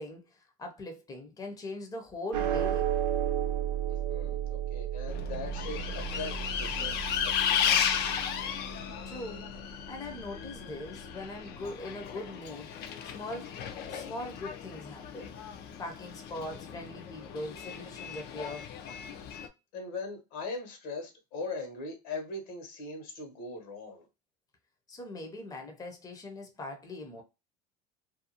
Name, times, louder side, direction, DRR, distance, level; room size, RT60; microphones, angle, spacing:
voice 1, 0.0-2.9 9.0-12.7 13.0-15.3 15.8-18.7 24.9-27.2, left 2 dB, 20° left, 0.7 m, -41 dB
sound 1, 2.3-8.9, right 10 dB, 70° right, 0.6 m, -33 dB
voice 2, 4.1-8.1 19.7-24.1, left 3 dB, 75° left, 1.2 m, -40 dB
Bus, 5.1-19.5, left 8 dB, 55° left, 0.5 m, -35 dB
2.6 x 2.2 x 2.7 m
supercardioid pair, 95°, 20 cm